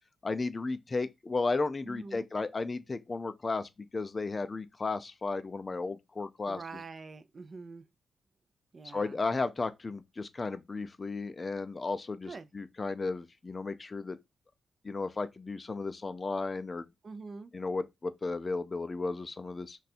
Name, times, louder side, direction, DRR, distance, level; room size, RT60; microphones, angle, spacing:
voice 1, 0.2-6.8 8.9-14.2 14.8-16.9 17.5-19.8, left 3 dB, 30° left, 0.4 m, -34 dB
voice 2, 1.8-2.3 6.5-7.9 8.7-9.2 12.3-12.5 17.0-17.5, right 4 dB, 40° right, 0.3 m, -45 dB
2.7 x 2.3 x 4.1 m
cardioid pair, 90°, 0 cm